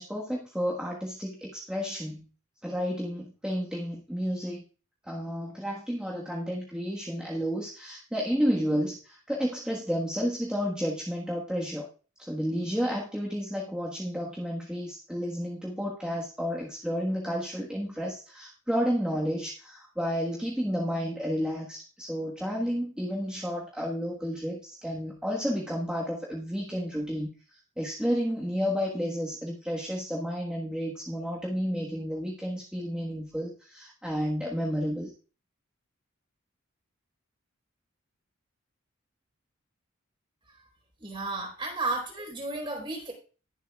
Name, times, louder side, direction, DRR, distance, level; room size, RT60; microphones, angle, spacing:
voice 1, 0.0-2.3 2.6-4.6 5.0-11.9 12.2-35.1, equal, 5° right, -3 dB, 1.5 m, -31 dB
voice 2, 41.0-43.1, right 3 dB, 25° right, 0 dB, 4.1 m, -33 dB
20.0 x 7.4 x 2.4 m, 0.36 s
head